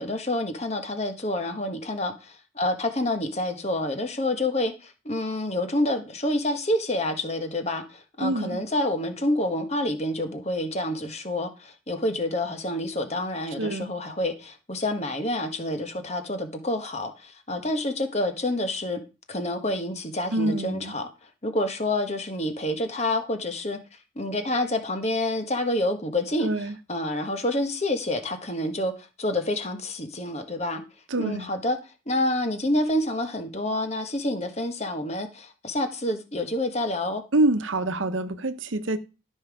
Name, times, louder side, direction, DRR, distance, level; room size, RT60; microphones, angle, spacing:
voice 1, 0.0-19.0 19.3-30.8 31.2-37.2, left 1 dB, 35° left, 1.4 m, -28 dB
voice 2, 8.2-8.6 13.6-13.9 20.3-20.9 26.4-26.7 31.1-31.5 37.3-39.0, right 2 dB, 75° right, 0.9 m, -26 dB
12.5 x 5.6 x 4.8 m
head